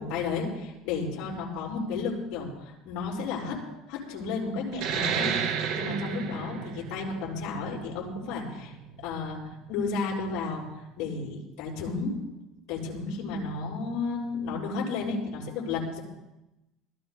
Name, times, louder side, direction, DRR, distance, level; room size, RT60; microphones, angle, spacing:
voice 1, 0.0-3.6 3.9-5.4 5.7-8.7 9.0-10.6 11.0-12.2 12.7-16.0, left 4 dB, 60° left, -3 dB, 6.5 m, -32 dB
sound 1, 4.7-9.9, right 7 dB, 60° right, 2.1 m, -32 dB
29.0 x 18.5 x 2.2 m, 0.91 s
cardioid pair, 175°, 0 cm